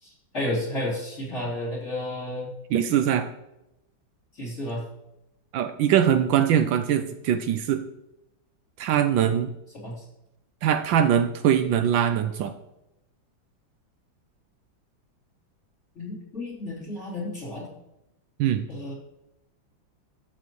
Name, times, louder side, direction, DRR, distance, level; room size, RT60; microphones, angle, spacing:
voice 1, 0.0-2.5 4.3-4.8 9.7-10.1 15.9-17.7 18.7-18.9, left 1 dB, 35° left, -6 dB, 3.9 m, -32 dB
voice 2, 2.7-3.3 5.5-7.8 8.8-9.5 10.6-12.5 18.4-18.6, right 9 dB, 75° right, 9 dB, 1.3 m, -22 dB
12.5 x 7.5 x 3.1 m, 0.88 s
omnidirectional pair, 2.2 m